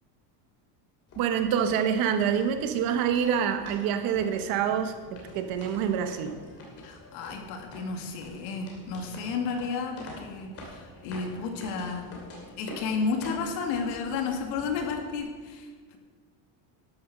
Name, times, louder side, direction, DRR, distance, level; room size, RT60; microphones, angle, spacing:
sound 1, 1.1-15.2, left 1 dB, 30° left, 2.7 m, -47 dB
voice 1, 1.2-6.3, right 8 dB, 45° right, 7 dB, 1.1 m, -26 dB
voice 2, 6.8-12.1 12.6-16.0, left 5 dB, 85° left, 4 dB, 2.1 m, -32 dB
12.0 x 7.8 x 6.6 m, 1.5 s
cardioid pair, 180°, 48 cm